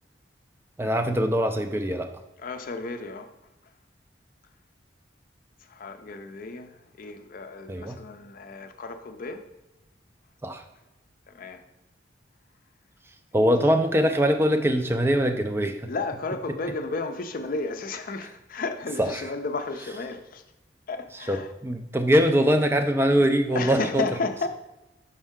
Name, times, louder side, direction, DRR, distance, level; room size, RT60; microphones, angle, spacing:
voice 1, 0.8-2.1 7.7-8.0 10.4-10.6 13.3-15.9 19.0-19.2 21.3-24.0, equal, 15° right, 0.3 m, -22 dB
voice 2, 2.4-3.3 5.6-9.5 11.3-11.6 15.9-20.4 20.9-21.5 23.5-24.5, left 3 dB, 50° left, 0.5 m, -33 dB
5.4 x 5.3 x 3.6 m
head